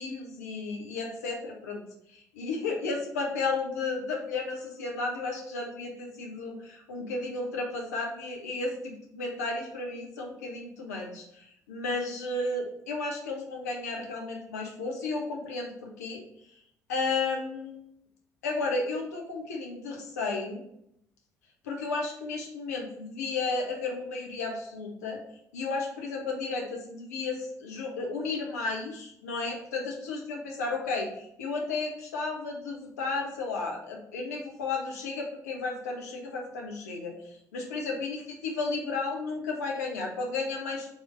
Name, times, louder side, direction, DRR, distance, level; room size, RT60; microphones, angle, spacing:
voice 1, 0.0-1.8 2.1-16.2 16.9-17.8 18.4-20.6 21.6-25.2 25.5-40.9, left 3 dB, 75° left, 1 dB, 0.7 m, -33 dB
3.5 x 2.7 x 4.6 m, 0.73 s
figure-of-eight pair, 50°, 9 cm